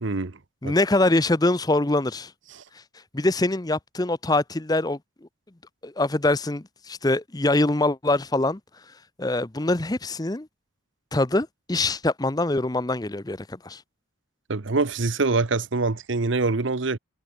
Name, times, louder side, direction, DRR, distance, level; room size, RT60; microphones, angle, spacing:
voice 1, 0.0-0.3 0.6-0.7 14.5-17.0, right 3 dB, 65° right, 0.9 m, -24 dB
voice 2, 0.6-2.3 3.1-5.0 5.8-8.6 9.2-10.5 11.1-13.8, left 2 dB, 20° left, 0.7 m, -24 dB
head